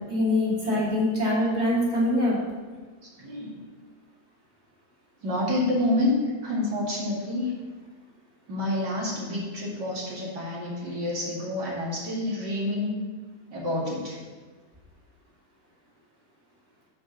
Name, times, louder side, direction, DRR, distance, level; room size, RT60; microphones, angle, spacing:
voice 1, 0.1-2.4, left 1 dB, 25° right, -6 dB, 2.6 m, -24 dB
voice 2, 3.2-3.6 5.2-6.1 6.4-7.5 8.5-12.9 13.5-14.2, left 1 dB, 85° right, -5 dB, 2.9 m, -28 dB
10.5 x 4.7 x 6.8 m, 1.4 s
omnidirectional pair, 1.8 m